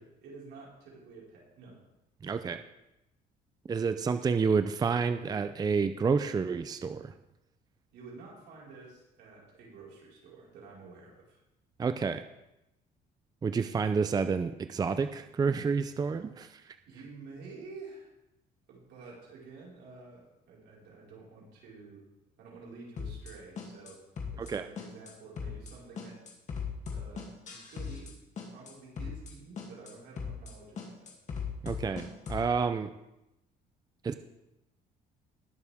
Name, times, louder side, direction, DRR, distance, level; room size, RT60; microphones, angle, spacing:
voice 1, 0.2-1.8 7.9-11.4 16.9-18.1 18.7-22.0 22.4-24.0 24.3-26.2 26.9-28.1 28.5-31.1, right 4 dB, 80° right, -5 dB, 4.6 m, -50 dB
voice 2, 2.2-2.6 3.7-7.1 11.8-12.2 13.4-16.8 24.4-24.7 31.6-32.9 34.0-34.1, right 5 dB, 25° right, 10 dB, 0.5 m, -29 dB
sound 1, 23.0-23.3 23.6-23.9 24.2-24.5 24.8-25.1 25.4-25.7 26.0-28.1 28.4-28.7 29.0-29.3 29.6-29.9 30.2-30.5 30.8-32.5, left 6 dB, 45° left, 2.4 m, -38 dB
19.5 x 7.0 x 3.5 m, 0.92 s
cardioid pair, 110°, 17 cm